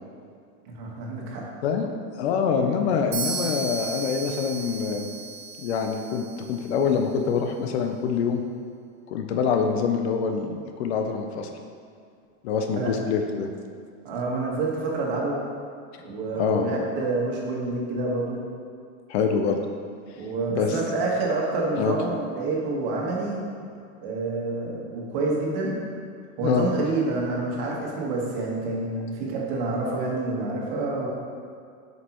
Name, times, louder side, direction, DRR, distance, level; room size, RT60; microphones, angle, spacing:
voice 1, 0.7-1.4 12.7-12.9 14.0-15.4 16.0-18.4 20.2-23.4 24.0-25.8 26.4-31.1, right 3 dB, 45° right, -3 dB, 1.5 m, -28 dB
voice 2, 2.2-5.1 5.6-8.4 9.1-11.5 12.4-13.5 16.3-16.7 19.1-19.6 20.5-20.8 21.8-21.9 26.4-26.7, left 6 dB, 55° left, 5 dB, 0.6 m, -25 dB
sound 1, 3.1-6.9, right 5 dB, 20° right, 0.5 m, -34 dB
7.9 x 5.2 x 3.0 m, 2.3 s
supercardioid pair, 165°, 40 cm